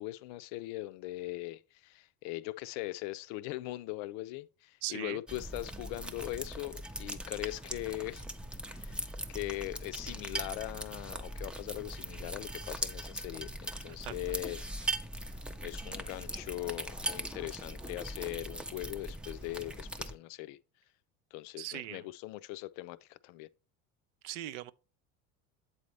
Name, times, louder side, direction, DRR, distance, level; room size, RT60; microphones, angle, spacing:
voice 1, 0.0-8.3 8.7-15.0 15.3-15.4 15.6-20.6 21.3-23.5, left 18 dB, 75° left, 0.5 m, -40 dB
voice 2, 4.8-5.2 14.0-14.1 21.6-22.0 24.2-24.7, right 14 dB, 85° right, 0.5 m, -39 dB
sound 1, 5.3-20.1, right 1 dB, 5° right, 0.4 m, -40 dB
7.7 x 4.1 x 3.2 m
supercardioid pair, 95°, 37 cm